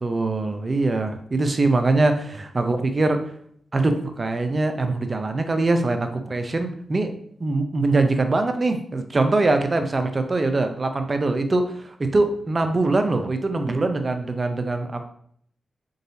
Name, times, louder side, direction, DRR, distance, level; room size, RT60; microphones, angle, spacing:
voice 1, 0.0-3.2 3.7-7.1 7.4-15.1, right 2 dB, 40° right, 7 dB, 0.5 m, -23 dB
3.9 x 3.8 x 2.7 m, 0.64 s
cardioid pair, 55°, 0 cm